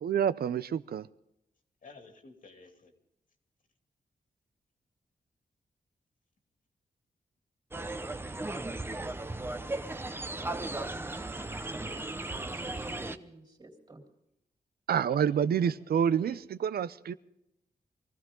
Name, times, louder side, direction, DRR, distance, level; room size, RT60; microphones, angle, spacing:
voice 1, 0.0-1.1 14.9-17.1, right 8 dB, 75° right, 16 dB, 0.6 m, -28 dB
voice 2, 1.8-2.9 15.1-15.3 15.6-16.4, left 3 dB, 60° left, 4 dB, 2.6 m, -53 dB
sound 1, 7.7-13.2, right 2 dB, 15° right, 0.8 m, -36 dB
voice 3, 10.4-14.0, right 2 dB, 30° right, 1 dB, 3.2 m, -50 dB
23.5 x 15.0 x 3.8 m, 0.84 s
wide cardioid pair, 115°, 16 cm